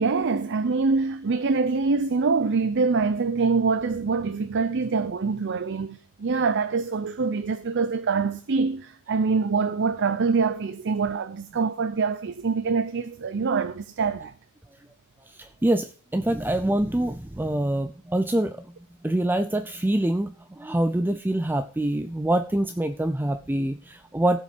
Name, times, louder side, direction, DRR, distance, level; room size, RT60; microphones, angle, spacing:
voice 1, 0.0-14.3, right 4 dB, 55° right, 0.6 m, -25 dB
voice 2, 15.3-18.7 19.0-24.4, right 1 dB, 10° right, 0.4 m, -25 dB
16.0 x 5.6 x 5.0 m
head